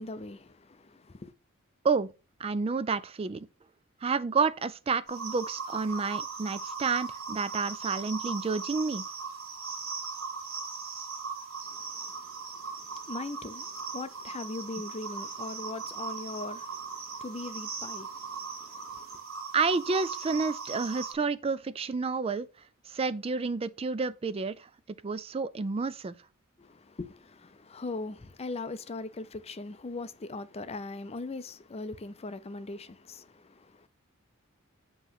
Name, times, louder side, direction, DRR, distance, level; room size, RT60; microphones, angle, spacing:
voice 1, 0.0-1.3 11.7-19.2 26.6-33.9, left 2 dB, 30° left, 0.5 m, -40 dB
voice 2, 2.4-3.5 4.0-9.0 19.5-22.5 22.9-24.7 25.0-26.1, right 4 dB, 25° right, 0.4 m, -30 dB
sound 1, 5.1-21.1, right 5 dB, 70° right, 1.9 m, -39 dB
7.8 x 3.1 x 5.7 m
head